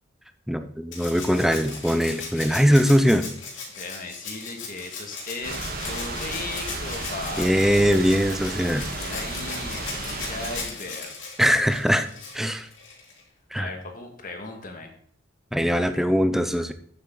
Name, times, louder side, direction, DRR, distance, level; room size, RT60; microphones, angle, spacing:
voice 1, 0.5-3.3 7.4-8.9 11.4-12.1 12.3-12.7 13.5-13.7 15.5-16.7, equal, ahead, 9 dB, 0.6 m, -21 dB
Rattle (instrument), 0.9-13.2 14.6-14.7, left 4 dB, 70° left, 3.0 m, -38 dB
voice 2, 3.8-7.5 9.0-11.1 13.6-14.9, left 3 dB, 45° left, 3 dB, 1.8 m, -37 dB
sound 1, 5.4-10.6, right 2 dB, 50° right, 1.8 m, -33 dB
8.7 x 8.0 x 3.9 m, 0.63 s
head